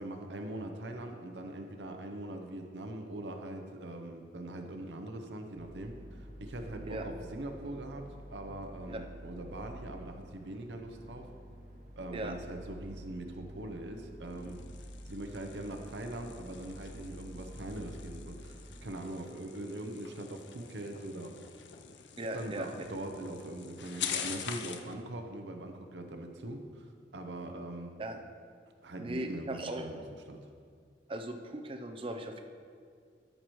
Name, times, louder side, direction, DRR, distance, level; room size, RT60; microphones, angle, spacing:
voice 1, 0.0-11.3 12.0-21.4 22.3-27.9 28.8-30.5, right 1 dB, 80° right, 4 dB, 0.7 m, -42 dB
sound 1, 5.5-18.8, equal, 45° right, 1.1 m, -49 dB
sound 2, 14.2-24.9, left 8 dB, 80° left, 0.6 m, -45 dB
voice 2, 22.2-22.7 28.0-28.2 29.0-29.9 31.1-32.4, right 1 dB, 30° right, 5 dB, 0.6 m, -38 dB
13.0 x 6.6 x 3.1 m, 2.1 s
head